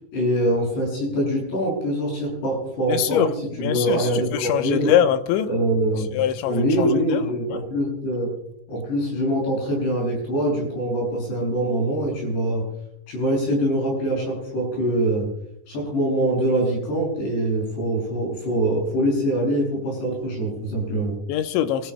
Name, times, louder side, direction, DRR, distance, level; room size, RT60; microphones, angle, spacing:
voice 1, 0.1-4.9 5.5-8.3 8.7-12.7 13.1-15.3 15.7-21.2, right 1 dB, 65° left, -1 dB, 9.7 m, -24 dB
voice 2, 2.9-3.3 3.6-5.5 6.1-7.2 21.3-21.9, left 10 dB, 85° left, 8 dB, 3.1 m, -23 dB
28.0 x 16.0 x 2.2 m, 0.78 s
omnidirectional pair, 5.3 m